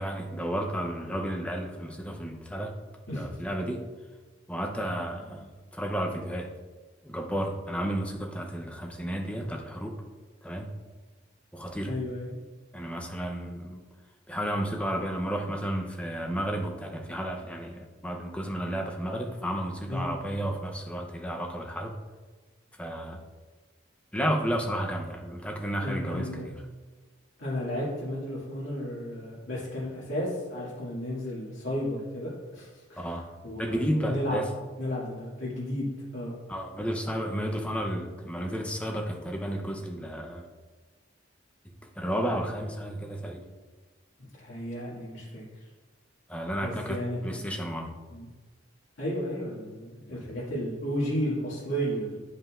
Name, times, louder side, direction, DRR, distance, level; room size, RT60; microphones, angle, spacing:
voice 1, 0.0-2.7 3.1-3.9 4.5-6.5 7.0-10.0 10.4-10.7 11.5-11.9 12.7-13.8 14.3-22.0 22.8-23.2 24.1-26.6 32.9-33.2 33.6-34.5 36.5-40.4 42.0-43.5 46.3-48.0 50.1-50.2, equal, 5° left, 2 dB, 0.6 m, -32 dB
voice 2, 11.9-12.3 19.9-20.1 25.8-26.5 27.4-34.4 34.8-35.9 36.1-36.3 44.3-45.4 46.6-47.4 48.1-48.3 49.0-52.2, equal, 90° left, -9 dB, 2.0 m, -33 dB
9.3 x 5.4 x 2.4 m, 1.3 s
head